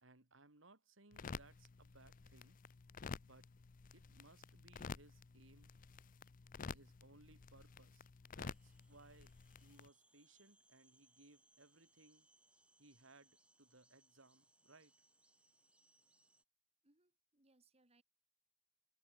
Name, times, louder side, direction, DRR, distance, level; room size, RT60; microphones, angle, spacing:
voice 1, 0.0-2.6 3.2-3.5 3.9-5.7 6.7-9.3 9.6-12.3 12.8-14.9, right 2 dB, 70° right, 3.1 m, -65 dB
sound 1, 1.1-9.9, left 5 dB, 45° left, 0.5 m, -52 dB
sound 2, 8.5-16.4, right 2 dB, 5° right, 4.6 m, -74 dB
voice 2, 16.8-18.0, right 2 dB, 30° right, 3.5 m, -74 dB
head